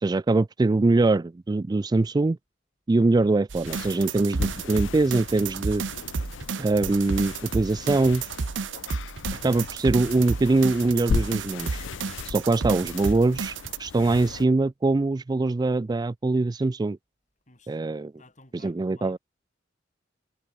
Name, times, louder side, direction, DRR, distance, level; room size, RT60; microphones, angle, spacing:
voice 1, 0.0-2.4 2.9-5.8 6.6-8.2 9.4-11.8 12.2-17.0 17.7-18.1 18.6-19.2, right 2 dB, 20° right, 0.3 m, -23 dB
sound 1, 3.5-13.8, right 5 dB, 80° right, 0.7 m, -32 dB
sound 2, 3.7-14.5, left 5 dB, 85° left, 0.5 m, -37 dB
voice 2, 17.5-17.8 18.2-19.2, left 2 dB, 40° left, 6.3 m, -54 dB
head